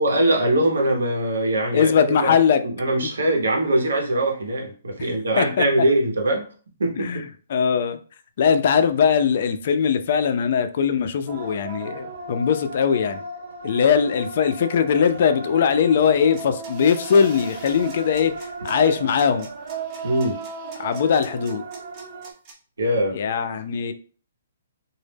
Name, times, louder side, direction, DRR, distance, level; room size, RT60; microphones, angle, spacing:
voice 1, 0.0-2.3 2.6-6.4 6.8-7.1 20.0-20.4 22.8-23.2, right 1 dB, 90° right, 1 dB, 0.7 m, -22 dB
voice 2, 1.7-2.6 5.4-5.6 7.0-7.2 7.5-8.0 8.4-13.2 13.6-18.3 18.6-19.5 20.8-21.6 23.1-23.9, left 7 dB, 55° left, 9 dB, 0.3 m, -20 dB
sound 1, 11.3-22.3, right 3 dB, 60° right, 0.8 m, -36 dB
sound 2, 16.3-22.5, right 3 dB, 30° right, 0.6 m, -46 dB
2.0 x 2.0 x 3.3 m, 0.41 s
hypercardioid pair, 150°, 0 cm